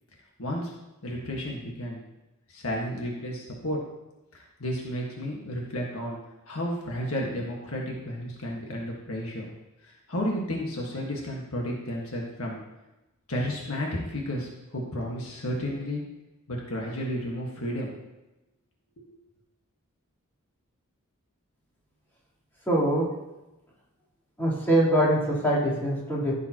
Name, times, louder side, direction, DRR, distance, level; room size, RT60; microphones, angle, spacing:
voice 1, 0.4-0.7 1.0-2.0 2.5-3.8 4.3-6.2 6.5-9.5 10.1-12.6 13.3-16.0 16.5-17.9 19.0-19.1, equal, 70° left, -2 dB, 1.7 m, -32 dB
voice 2, 22.7-23.2 24.4-26.3, right 1 dB, 10° left, -10 dB, 3.7 m, -23 dB
14.5 x 7.2 x 3.0 m, 0.99 s
head